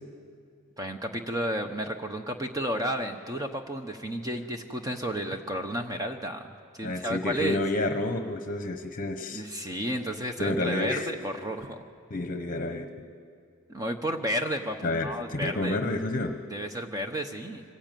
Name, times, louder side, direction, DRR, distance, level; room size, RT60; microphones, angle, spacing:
voice 1, 0.8-6.4 6.7-7.6 9.3-11.8 13.7-15.8 16.5-17.6, right 1 dB, 15° right, 5 dB, 0.9 m, -32 dB
voice 2, 6.8-9.4 10.4-11.1 12.1-12.9 14.8-16.4, left 2 dB, 40° left, 6 dB, 1.0 m, -29 dB
25.0 x 15.5 x 9.2 m, 2.3 s
head